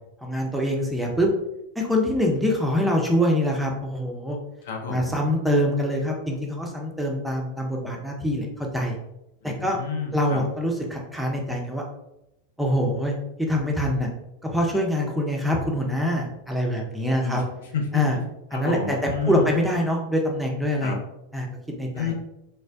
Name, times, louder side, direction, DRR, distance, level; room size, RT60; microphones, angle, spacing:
voice 1, 0.2-1.3 1.8-4.4 4.9-9.0 9.4-9.8 10.1-11.8 12.6-14.1 14.4-17.4 17.9-18.2 18.5-21.0 21.3-21.5 21.8-22.1, equal, ahead, -1 dB, 0.5 m, -24 dB
voice 2, 4.6-5.1 9.4-10.4 17.2-18.2 18.5-19.6 20.8-21.0 21.9-22.1, left 5 dB, 60° left, 2 dB, 0.5 m, -30 dB
3.2 x 2.1 x 2.5 m, 0.86 s
figure-of-eight pair, 90°, 0 cm